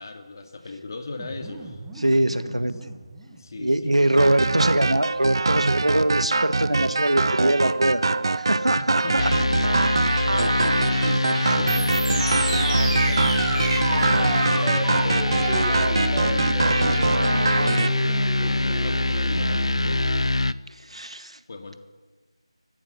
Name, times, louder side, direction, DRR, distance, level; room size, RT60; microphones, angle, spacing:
voice 1, 0.0-1.8 3.3-4.1 8.8-20.1 21.5-21.8, left 3 dB, 40° left, 6 dB, 2.4 m, -38 dB
sound 1, 1.2-3.4 11.7-20.2, right 3 dB, 10° right, 1.9 m, -32 dB
voice 2, 2.0-2.7 3.6-8.0 8.4-9.0 20.9-21.4, right 1 dB, 90° right, 11 dB, 1.6 m, -22 dB
sound 2, 4.2-17.9, right 3 dB, 50° right, 0.8 m, -24 dB
sound 3, 9.2-20.5, left 2 dB, 75° left, 0.7 m, -24 dB
26.5 x 14.5 x 8.4 m, 1.3 s
figure-of-eight pair, 165°, 3 cm